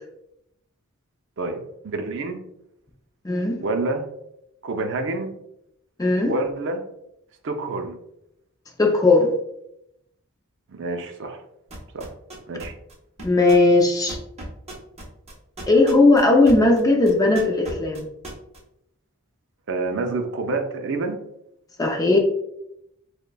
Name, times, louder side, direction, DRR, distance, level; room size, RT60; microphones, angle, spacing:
voice 1, 1.4-2.4 3.6-4.1 4.6-5.3 6.3-6.8 7.4-8.0 10.7-11.4 11.9-12.1 12.5-12.7 19.7-21.2, right 3 dB, 55° right, 5 dB, 0.5 m, -27 dB
voice 2, 3.2-3.6 6.0-6.3 8.8-9.3 13.2-14.2 15.7-18.1 21.8-22.2, left 2 dB, 15° left, 2 dB, 0.4 m, -17 dB
sound 1, 11.7-16.8 17.1-18.6, right 1 dB, 30° right, 0.8 m, -38 dB
6.3 x 2.2 x 2.2 m, 0.80 s
head